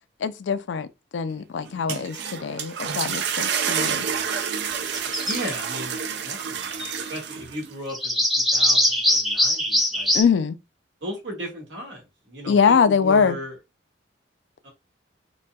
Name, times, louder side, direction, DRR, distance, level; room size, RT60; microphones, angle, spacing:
voice 1, 0.2-0.9 1.1-4.1 10.1-10.6 12.5-13.4, left 6 dB, 70° left, 0.4 m, -22 dB
sound 1, 1.7-7.7, right 7 dB, 65° right, 0.4 m, -29 dB
sound 2, 4.9-5.4 6.4-7.0 7.9-10.2, left 1 dB, ahead, 0.5 m, -22 dB
voice 2, 5.2-10.1 11.0-13.5 14.6-14.7, equal, 80° right, 1.5 m, -36 dB
4.0 x 2.2 x 2.2 m
head